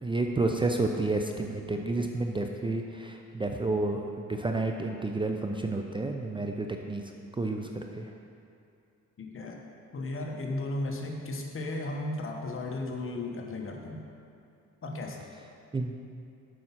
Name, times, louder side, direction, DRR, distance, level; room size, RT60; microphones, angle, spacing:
voice 1, 0.0-7.0 7.4-8.1 15.7-15.9, right 2 dB, 15° right, 3 dB, 0.5 m, -30 dB
voice 2, 9.2-9.6 9.9-14.0 14.8-15.3, left 2 dB, 45° left, 1 dB, 1.2 m, -35 dB
7.7 x 5.5 x 5.8 m, 2.5 s
cardioid pair, 90°, 30 cm